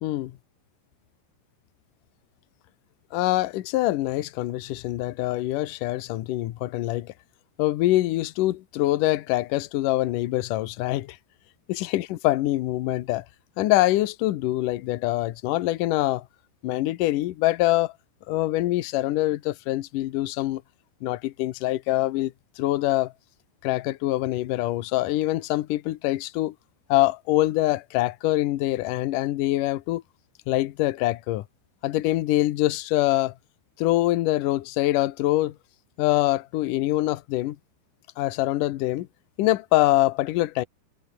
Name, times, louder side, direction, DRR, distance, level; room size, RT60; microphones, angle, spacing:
voice 1, 3.1-7.1 7.6-11.2 11.7-13.2 13.6-16.2 16.6-17.9 18.3-20.6 21.0-23.1 23.6-26.5 26.9-30.0 30.5-31.4 31.8-33.3 33.8-35.6 36.0-37.6 38.2-39.1 39.4-40.6, left 16 dB, 80° left, 1.8 m, -24 dB
omnidirectional pair, 5.2 m